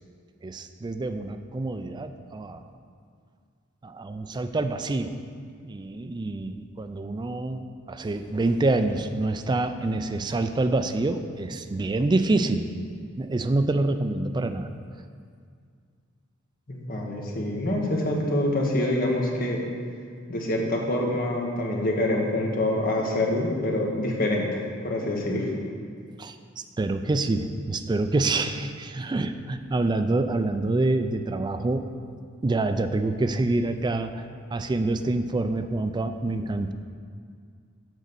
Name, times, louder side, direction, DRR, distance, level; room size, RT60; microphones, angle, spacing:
voice 1, 0.4-2.6 3.8-5.2 5.6-12.7 13.2-14.7 26.2-26.4 26.8-31.9 32.4-34.2 34.5-36.7, right 2 dB, 20° right, 8 dB, 0.3 m, -26 dB
voice 2, 16.7-19.6 20.3-24.6 24.8-25.5, left 1 dB, 45° left, -1 dB, 1.2 m, -26 dB
6.4 x 5.1 x 6.8 m, 2.1 s
head